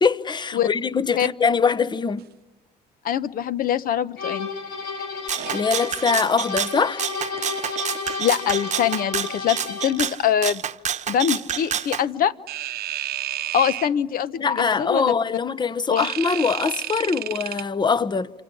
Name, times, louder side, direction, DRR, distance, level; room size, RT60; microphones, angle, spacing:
voice 1, 0.0-2.3 5.3-7.0 14.4-18.3, left 5 dB, 25° left, 0.9 m, -23 dB
voice 2, 3.0-4.5 8.2-10.6 11.1-12.3 13.5-15.1 15.9-16.1, left 9 dB, 60° left, 1.0 m, -23 dB
sound 1, 4.2-10.1, left 4 dB, 75° left, 4.7 m, -32 dB
Rattle (instrument), 5.3-12.0, right 9 dB, 45° right, 1.0 m, -28 dB
sound 2, 5.3-5.9 7.3-8.2 12.5-13.9 16.0-17.6, right 14 dB, 65° right, 0.9 m, -32 dB
27.0 x 26.0 x 8.4 m
cardioid pair, 110°, 17 cm